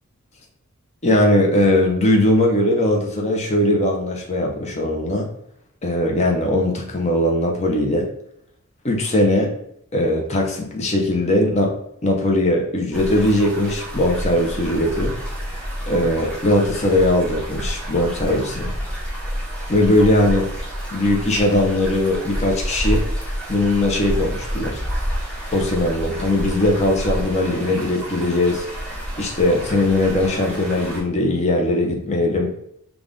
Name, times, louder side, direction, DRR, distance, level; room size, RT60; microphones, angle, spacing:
voice 1, 1.0-5.3 5.8-8.1 8.8-9.5 9.9-11.7 12.0-15.1 15.9-18.7 19.7-20.5 20.9-23.1 23.5-24.8 25.5-28.7 29.2-32.5, left 1 dB, 30° left, 0 dB, 0.7 m, -19 dB
sound 1, 12.9-31.0, equal, 5° left, 1.8 m, -29 dB
5.3 x 2.4 x 3.8 m, 0.73 s
head